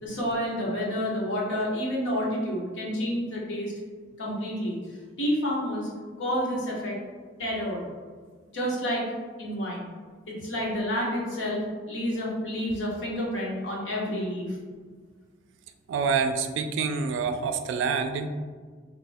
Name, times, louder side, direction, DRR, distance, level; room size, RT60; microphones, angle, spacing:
voice 1, 0.0-3.7 4.2-4.8 5.2-5.9 6.2-7.0 7.4-7.8 8.5-9.1 9.4-9.9 10.3-14.6, equal, 70° left, -4 dB, 0.9 m, -29 dB
voice 2, 15.9-18.3, right 5 dB, 70° right, 7 dB, 0.3 m, -27 dB
2.9 x 2.5 x 3.3 m, 1.5 s
head